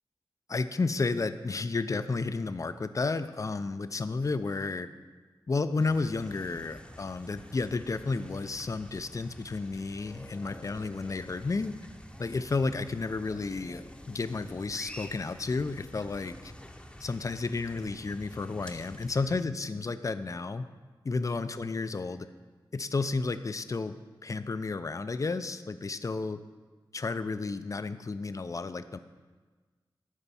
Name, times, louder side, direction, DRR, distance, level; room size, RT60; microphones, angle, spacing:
voice 1, 0.5-4.9 5.5-11.7 12.2-16.5 17.0-20.7 21.0-22.3 22.7-23.9 24.2-26.4 26.9-29.0, left 3 dB, 35° left, 12 dB, 0.4 m, -32 dB
sound 1, 5.8-19.4, left 1 dB, 10° left, 0.7 m, -48 dB
12.0 x 4.5 x 4.2 m, 1.4 s
cardioid pair, 55°, 9 cm